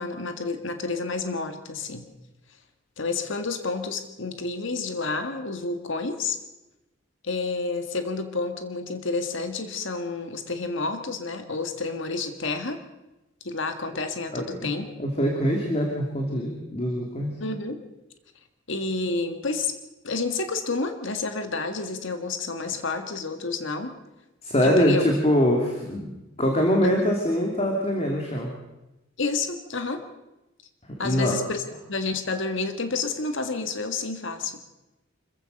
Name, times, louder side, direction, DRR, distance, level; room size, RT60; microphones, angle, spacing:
voice 1, 0.0-2.1 3.0-6.4 7.2-12.8 13.5-14.9 17.4-17.8 18.7-19.7 20.0-24.0 24.6-25.0 26.8-27.1 29.2-30.0 31.0-31.6 31.9-34.6, left 3 dB, 70° left, 7 dB, 1.8 m, -29 dB
voice 2, 14.3-14.7 15.0-17.3 24.4-26.1 26.4-28.5 31.0-31.4, equal, 30° left, 0 dB, 2.8 m, -23 dB
26.0 x 15.0 x 6.6 m, 0.98 s
head